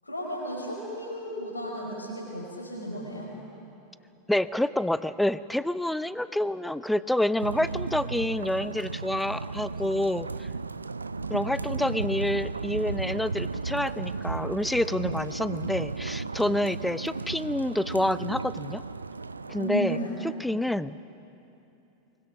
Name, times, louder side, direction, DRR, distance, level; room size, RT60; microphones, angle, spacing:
voice 1, 0.0-3.3 19.6-20.2, equal, 85° left, -2 dB, 4.8 m, -34 dB
voice 2, 4.3-10.5 11.3-18.8 19.5-20.0 20.4-21.0, left 1 dB, 5° left, 16 dB, 0.5 m, -28 dB
sound 1, 7.4-19.7, right 4 dB, 80° right, 0.5 m, -34 dB
23.0 x 21.5 x 6.1 m, 2.9 s
figure-of-eight pair, 85°, 0 cm